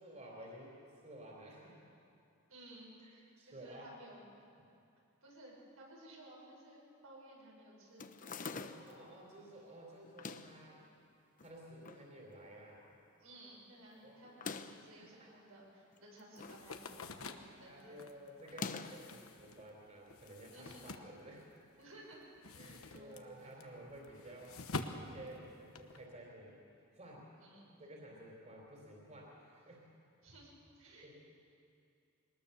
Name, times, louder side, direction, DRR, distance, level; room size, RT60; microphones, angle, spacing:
voice 1, 0.0-1.9 3.0-3.9 4.6-4.7 8.4-10.9 11.4-12.9 13.9-14.2 15.0-15.3 17.6-21.5 22.6-24.6 24.9-26.6 26.9-27.2 27.8-29.9 31.0-31.2, right 1 dB, 35° right, -1 dB, 3.7 m, -53 dB
voice 2, 2.5-4.2 5.2-8.1 8.4-8.5 13.2-18.0 20.5-20.9 21.8-22.2 22.6-23.7 24.2-24.3 27.4-27.8 30.2-30.5 30.8-31.2, right 1 dB, 85° right, -3 dB, 6.6 m, -57 dB
sound 1, 8.0-9.0 10.0-10.6 11.4-12.1 12.4-12.5 12.7-12.8 14.2-14.9 15.9-16.7 17.0-17.3 18.5-19.1, left 4 dB, 40° left, 0.8 m, -45 dB
sound 2, 16.4-21.8 22.1-26.0, left 3 dB, 85° left, 1.2 m, -47 dB
23.0 x 19.5 x 6.9 m, 2.6 s
head